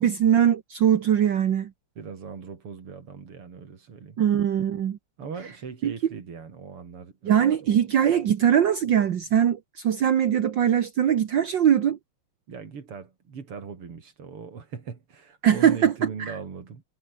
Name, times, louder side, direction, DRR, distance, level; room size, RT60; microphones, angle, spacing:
voice 1, 0.0-1.7 4.2-5.0 5.8-5.9 7.2-12.0 15.4-15.9 16.2-16.3, right 9 dB, 60° right, 1.8 m, -21 dB
voice 2, 2.0-4.2 5.2-7.8 12.5-16.8, right 5 dB, 85° right, 3.9 m, -39 dB
omnidirectional pair, 2.4 m